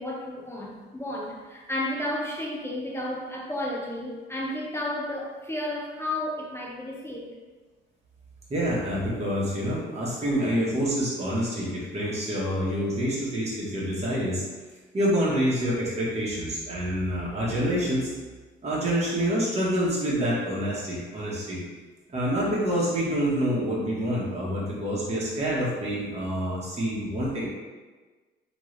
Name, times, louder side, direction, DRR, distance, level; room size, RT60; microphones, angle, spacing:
voice 1, 0.0-7.3, left 1 dB, 10° left, -3 dB, 0.7 m, -32 dB
voice 2, 8.5-14.4 14.9-18.1 18.6-21.6 22.1-27.5, equal, 30° right, -7 dB, 1.4 m, -27 dB
3.5 x 3.1 x 3.2 m, 1.3 s
cardioid pair, 90°, 20 cm